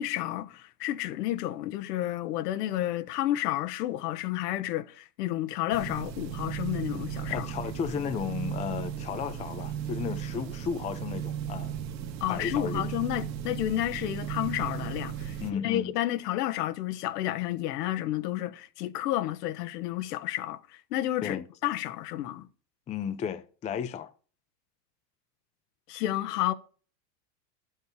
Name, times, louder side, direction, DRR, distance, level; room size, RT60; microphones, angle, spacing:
voice 1, 0.0-7.5 12.2-15.4 15.6-20.6 20.9-22.4 25.9-26.5, left 14 dB, 70° left, 1.4 m, -31 dB
sound 1, 5.7-15.5, right 9 dB, 90° right, 1.8 m, -36 dB
voice 2, 7.3-11.8 12.3-12.9 15.4-15.9 21.2-21.4 22.9-24.1, left 7 dB, 15° left, 0.5 m, -34 dB
12.0 x 8.1 x 4.9 m
supercardioid pair, 140°, 49 cm